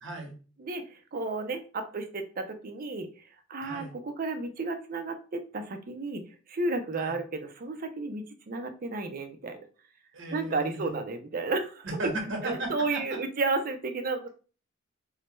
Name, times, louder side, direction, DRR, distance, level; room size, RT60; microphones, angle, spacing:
voice 1, 0.0-0.4 3.6-3.9 7.0-7.2 10.1-11.0 12.0-13.0, right 2 dB, 70° right, 1 dB, 1.3 m, -36 dB
voice 2, 1.1-3.1 3.5-6.2 6.5-9.6 10.3-12.1 12.4-14.3, right 3 dB, 50° right, 7 dB, 0.6 m, -32 dB
4.5 x 2.2 x 3.0 m, 0.37 s
head